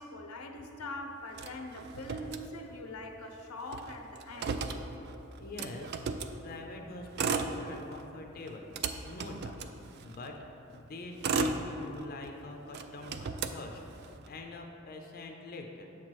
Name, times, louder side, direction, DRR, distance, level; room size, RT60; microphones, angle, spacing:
voice 1, 0.0-4.6, left 1 dB, 90° left, 4 dB, 0.6 m, -43 dB
Motor vehicle (road), 1.3-3.0 3.3-3.4 3.6-6.4 7.0-8.1 8.5-10.3 10.9-12.3 12.7-14.3, right 4 dB, 50° right, 0.3 m, -35 dB
voice 2, 5.4-6.0 6.4-8.7 9.1-9.7 10.0-10.4 10.7-13.8 14.2-15.9, left 2 dB, 45° left, 2 dB, 0.4 m, -44 dB
7.2 x 3.0 x 6.0 m, 3.0 s
head